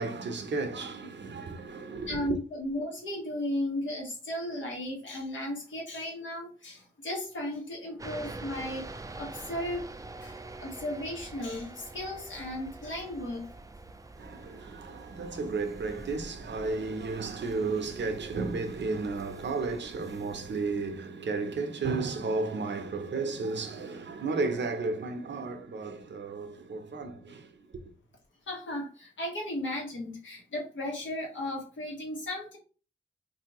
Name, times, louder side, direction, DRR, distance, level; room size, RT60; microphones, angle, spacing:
voice 1, 0.0-2.4 14.2-27.6, right 3 dB, 70° right, 0.7 m, -33 dB
voice 2, 2.1-8.9 9.1-9.9 10.2-13.5 28.5-32.6, left 1 dB, 80° left, 1.3 m, -35 dB
sound 1, 8.0-21.0, right 2 dB, 20° right, 0.4 m, -46 dB
3.3 x 2.6 x 2.9 m
cardioid pair, 45°, 19 cm